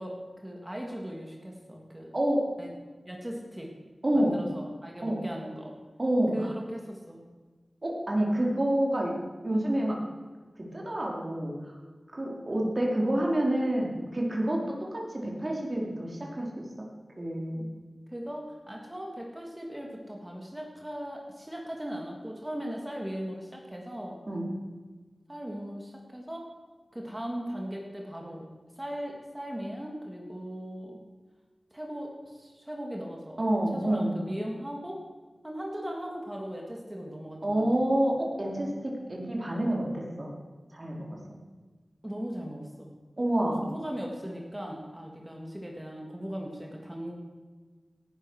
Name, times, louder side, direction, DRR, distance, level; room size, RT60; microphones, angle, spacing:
voice 1, 0.0-2.1 2.6-2.7 3.0-3.7 4.1-5.7 6.3-7.2 12.6-12.8 18.1-24.2 25.3-26.5 26.9-28.5 28.8-31.0 31.7-33.4 33.7-35.0 35.4-37.6 42.0-42.9 43.6-47.1, equal, 15° right, 0 dB, 3.1 m, -38 dB
voice 2, 4.0-4.4 5.0-5.2 6.0-6.5 7.8-9.1 9.4-10.0 10.7-11.5 12.1-16.6 17.2-17.6 24.3-24.5 33.4-34.1 37.4-40.3 40.7-41.2 43.2-43.6, right 1 dB, 40° right, -2 dB, 4.7 m, -28 dB
18.0 x 11.0 x 6.6 m, 1.4 s
wide cardioid pair, 55°, 0 cm